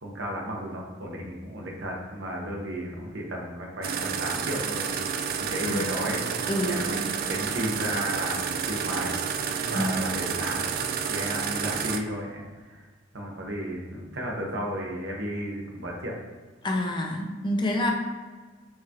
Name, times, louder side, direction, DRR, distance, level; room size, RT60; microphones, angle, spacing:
voice 1, 0.0-4.9 5.5-6.3 6.7-9.2 9.5-10.7 11.1-12.9 13.1-16.1, equal, 65° right, -1 dB, 1.0 m, -33 dB
sound 1, 3.8-12.0, right 7 dB, 50° right, 0.3 m, -30 dB
voice 2, 5.6-6.0 6.5-6.8 9.7-9.9 16.6-17.9, left 1 dB, 25° left, 1 dB, 0.5 m, -27 dB
4.7 x 3.6 x 2.9 m, 1.4 s
head